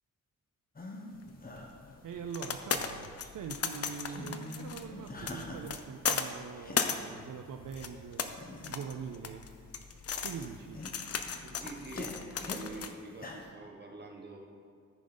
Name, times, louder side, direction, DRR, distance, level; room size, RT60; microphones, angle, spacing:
sound 1, 0.8-1.1 1.4-2.5 2.8-3.5 3.8-5.8 6.1-7.1 7.6-7.7 8.3-8.9 9.5-9.9 10.2-12.7 13.1-13.5, left 2 dB, 30° left, 0.9 m, -45 dB
sound 2, 1.2-12.9, left 6 dB, 50° left, 0.6 m, -37 dB
voice 1, 2.0-8.4 8.7-9.5 10.2-10.8, right 7 dB, 85° right, 4 dB, 0.5 m, -43 dB
voice 2, 11.4-12.1 12.4-14.4, right 3 dB, 35° right, 0 dB, 1.4 m, -46 dB
14.0 x 5.1 x 3.9 m, 2.3 s
wide cardioid pair, 130°, 31 cm